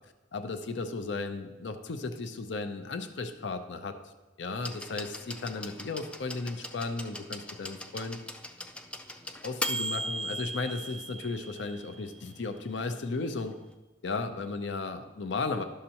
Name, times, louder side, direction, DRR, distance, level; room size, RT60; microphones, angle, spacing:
voice 1, 0.3-4.0 4.4-8.2 9.4-13.6 14.0-15.6, left 3 dB, 70° left, 8 dB, 0.6 m, -35 dB
sound 1, 4.6-12.4 13.5-13.6, equal, 5° left, 0.3 m, -38 dB
11.5 x 6.6 x 2.9 m, 1.1 s
head